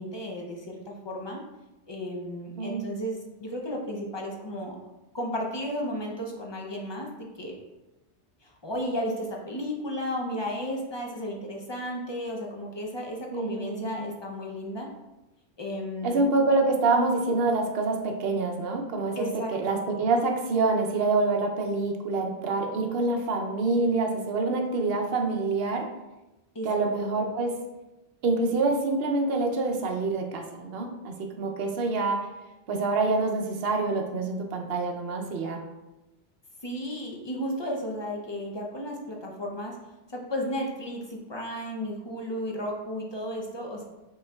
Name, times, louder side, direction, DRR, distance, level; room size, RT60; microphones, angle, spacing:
voice 1, 0.0-1.4 1.9-4.8 5.1-7.6 8.4-14.9 15.6-16.2 19.2-19.9 26.5-27.3 36.6-39.7 40.1-43.8, equal, 35° left, 0 dB, 0.4 m, -34 dB
voice 2, 13.3-14.1 16.0-19.3 19.5-25.9 26.6-27.6 28.2-32.3 32.7-35.6, right 3 dB, 60° right, 2 dB, 0.8 m, -26 dB
5.2 x 3.8 x 2.3 m, 1.0 s
omnidirectional pair, 1.2 m